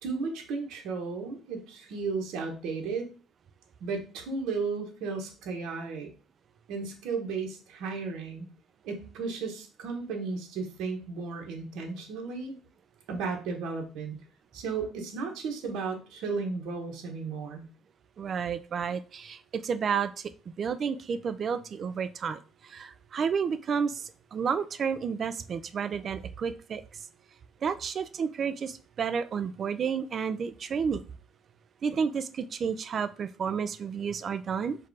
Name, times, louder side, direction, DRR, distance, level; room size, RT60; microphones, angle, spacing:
voice 1, 0.0-3.1 3.8-6.1 6.7-8.5 8.8-12.5 13.1-14.2 14.5-17.6, right 4 dB, 70° right, 3 dB, 1.1 m, -34 dB
voice 2, 18.2-20.1 20.5-26.8 27.6-31.0 31.8-34.8, right 6 dB, 35° right, 12 dB, 0.3 m, -31 dB
4.7 x 2.4 x 4.6 m, 0.36 s
cardioid pair, 160°, 0 cm